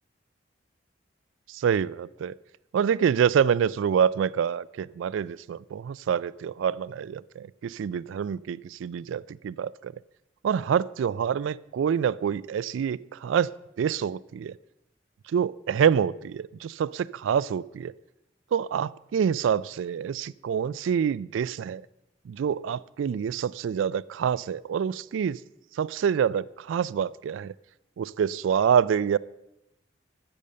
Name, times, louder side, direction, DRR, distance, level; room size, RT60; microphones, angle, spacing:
voice 1, 1.5-2.3 2.7-9.9 10.4-13.5 13.8-14.6 15.3-17.9 18.5-21.8 22.3-25.4 25.7-27.5 28.0-29.2, right 7 dB, 85° right, 20 dB, 0.3 m, -26 dB
13.5 x 6.9 x 6.5 m, 0.90 s
head